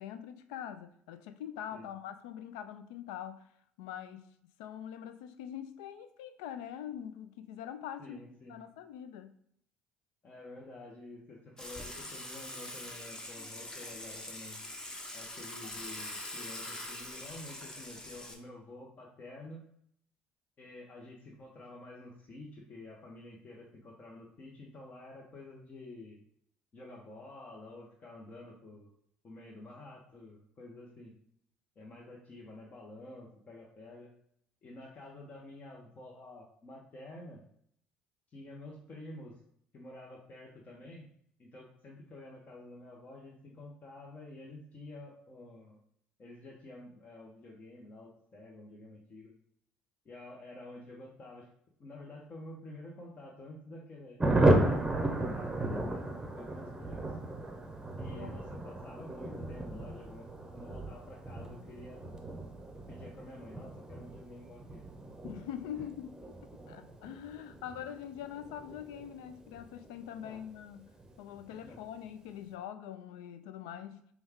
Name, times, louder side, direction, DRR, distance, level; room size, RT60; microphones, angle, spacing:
voice 1, 0.0-3.5 3.8-4.3 4.6-8.2 8.5-9.4 58.2-58.4 65.2-66.2 66.7-70.9 71.2-74.1, left 10 dB, 90° left, 0.3 m, -43 dB
voice 2, 8.0-8.6 10.2-14.6 15.1-19.6 20.6-26.2 26.7-28.9 29.2-31.1 31.8-34.1 34.6-37.4 38.3-39.4 39.7-41.1 41.4-45.8 46.2-49.3 50.0-51.5 51.8-56.1 56.4-57.1 57.9-60.3 60.5-62.0 62.7-64.9 70.2-70.4 71.6-71.8, left 2 dB, 40° left, 1.0 m, -49 dB
Water / Water tap faucet / Sink (filling or washing), 11.6-18.3, left 1 dB, 20° left, 0.9 m, -43 dB
Thunder, 54.2-70.3 70.6-70.7 71.0-71.1 71.4-71.8, right 1 dB, 15° right, 0.8 m, -34 dB
5.3 x 2.3 x 3.5 m
supercardioid pair, 80°, 4 cm